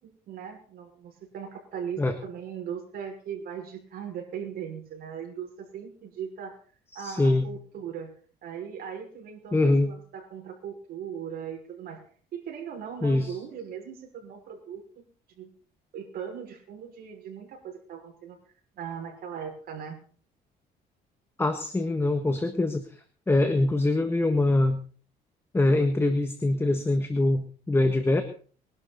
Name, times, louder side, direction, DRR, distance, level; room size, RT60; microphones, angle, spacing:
voice 1, 0.0-6.6 6.9-8.1 8.4-12.0 12.3-14.8 15.4-15.5 15.9-18.4 18.7-20.0, right 8 dB, 65° right, 1 dB, 5.8 m, -39 dB
voice 2, 6.9-7.5 9.5-9.9 13.0-13.3 21.4-22.8 23.3-24.8 25.5-28.2, left 2 dB, 15° left, 7 dB, 1.4 m, -23 dB
21.5 x 11.5 x 4.1 m, 0.43 s
cardioid pair, 110°, 17 cm